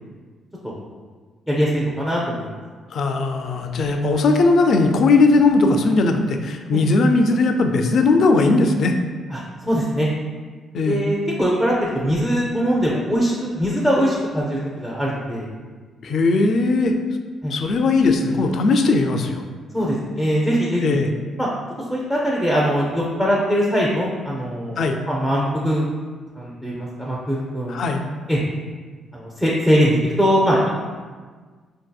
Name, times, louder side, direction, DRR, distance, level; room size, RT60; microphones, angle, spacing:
voice 1, 1.5-2.5 6.7-6.8 9.3-10.1 10.9-15.5 17.4-17.5 19.7-21.0 21.4-21.5 21.9-25.8 26.4-27.7 28.3-28.4 29.1-30.7, equal, 5° right, -4 dB, 0.5 m, -21 dB
voice 2, 2.9-8.9 10.7-11.1 16.0-17.0 17.5-19.4 20.8-21.1 24.8-25.0 27.7-28.0, left 3 dB, 60° left, 5 dB, 0.3 m, -18 dB
4.0 x 2.6 x 2.2 m, 1.5 s
cardioid pair, 90°, 0 cm